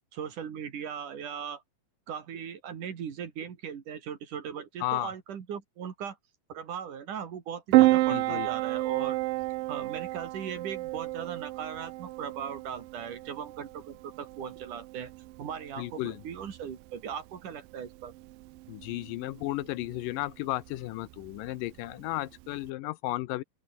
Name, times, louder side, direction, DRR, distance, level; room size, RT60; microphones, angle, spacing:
voice 1, 0.1-1.6 2.1-6.2 6.5-9.2 9.7-15.1 15.4-18.1, right 8 dB, 65° right, 3.9 m, -38 dB
voice 2, 4.8-5.1 8.1-8.5 15.8-16.2 18.7-23.4, left 17 dB, 80° left, 2.3 m, -34 dB
Piano, 7.7-22.7, right 19 dB, 85° right, 2.3 m, -31 dB
open air
omnidirectional pair, 4.0 m